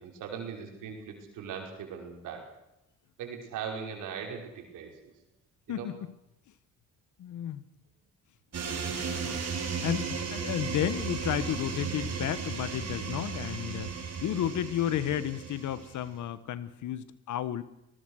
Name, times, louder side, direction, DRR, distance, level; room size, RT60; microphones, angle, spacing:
voice 1, 0.0-2.5 3.2-4.9 5.7-5.9, right 7 dB, 85° right, 2 dB, 5.6 m, -39 dB
voice 2, 7.2-7.6 8.9-9.4 9.8-13.9 14.2-17.6, left 11 dB, 75° left, 14 dB, 1.4 m, -32 dB
sound 1, 8.5-16.1, right 6 dB, 55° right, 5.3 m, -35 dB
23.5 x 19.5 x 6.5 m, 0.88 s
cardioid pair, 90°, 30 cm